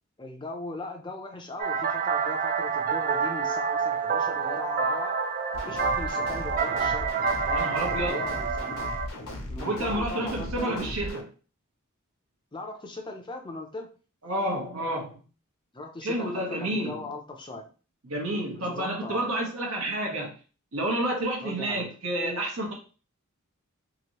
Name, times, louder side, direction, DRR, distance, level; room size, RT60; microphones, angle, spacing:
voice 1, 0.2-5.2 5.5-7.2 7.4-8.8 9.5-10.9 12.5-13.9 15.7-17.7 18.5-19.3 21.4-21.9, left 2 dB, 20° left, 2 dB, 0.5 m, -39 dB
sound 1, 1.6-9.1, right 5 dB, 40° right, 0.4 m, -28 dB
sound 2, 5.5-11.2, left 1 dB, 70° left, 0.8 m, -37 dB
voice 2, 7.5-8.2 9.6-11.3 14.2-15.2 16.0-17.0 18.0-20.3 20.7-22.7, right 1 dB, 65° right, -1 dB, 0.9 m, -30 dB
3.0 x 2.6 x 2.9 m, 0.36 s
head